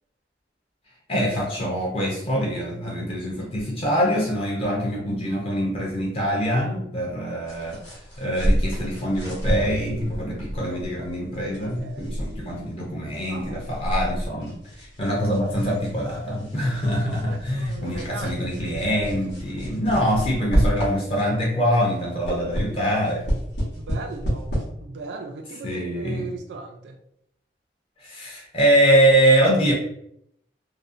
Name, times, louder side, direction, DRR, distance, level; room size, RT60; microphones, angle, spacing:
voice 1, 1.1-7.8 8.2-23.2 25.6-26.3 28.0-29.7, equal, 30° left, -2 dB, 0.5 m, -24 dB
sound 1, 7.5-21.4 21.8-24.6, equal, 85° left, 0.9 m, -29 dB
voice 2, 11.6-12.4 13.2-13.8 16.8-16.9 17.3-18.8 23.8-24.5 24.8-27.0, right 4 dB, 75° right, 5 dB, 0.3 m, -38 dB
2.4 x 2.0 x 2.5 m, 0.74 s
head